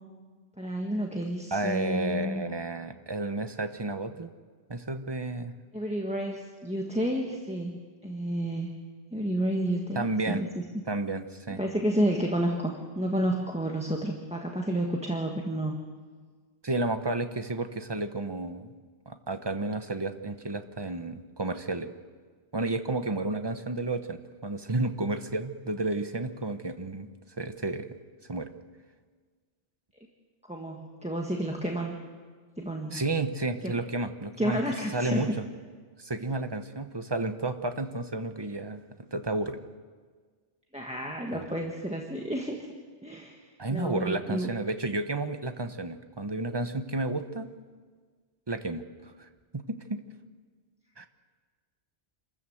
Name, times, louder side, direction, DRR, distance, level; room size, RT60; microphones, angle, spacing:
voice 1, 0.6-2.4 5.7-8.8 9.1-10.6 11.5-15.8 30.5-31.9 32.6-33.0 33.6-33.8 34.4-35.3 40.7-42.6 43.0-44.5, equal, 5° right, 1 dB, 1.5 m, -31 dB
voice 2, 1.5-4.3 4.7-5.5 9.9-10.4 10.9-11.6 16.6-18.7 19.1-21.9 22.5-27.1 27.4-27.9 28.3-28.5 32.9-34.6 34.9-35.4 36.0-38.8 39.1-39.6 41.3-41.5 43.6-47.5 48.5-50.0 51.0-51.1, right 2 dB, 25° right, 9 dB, 1.0 m, -31 dB
27.0 x 14.0 x 7.9 m, 1.5 s
omnidirectional pair, 1.1 m